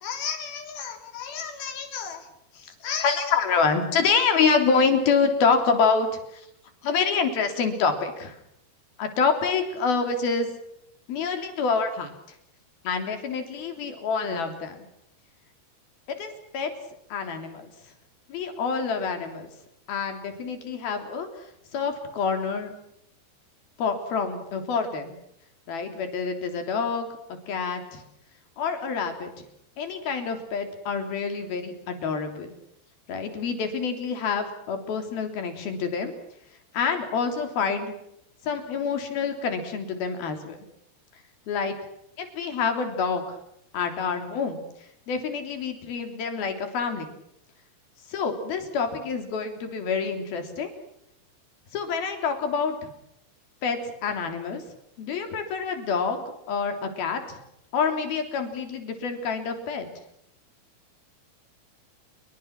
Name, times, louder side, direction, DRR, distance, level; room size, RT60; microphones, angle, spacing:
voice 1, 0.0-2.3 2.5-6.1 6.3-6.5 6.8-8.4 9.0-10.5 11.1-12.1 12.8-14.8 16.1-16.7 17.1-17.7 18.3-19.5 19.9-21.3 21.7-22.7 23.8-25.1 25.7-27.1 27.5-28.0 28.6-29.5 29.8-32.5 33.1-36.1 36.7-37.9 38.4-40.6 41.5-41.7 42.2-43.4 43.7-44.6 45.1-47.1 48.1-50.7 51.7-52.9 53.6-54.6 55.0-57.4 57.7-59.9, left 5 dB, 60° left, 6 dB, 5.1 m, -27 dB
29.0 x 23.5 x 6.1 m, 0.78 s
omnidirectional pair, 4.9 m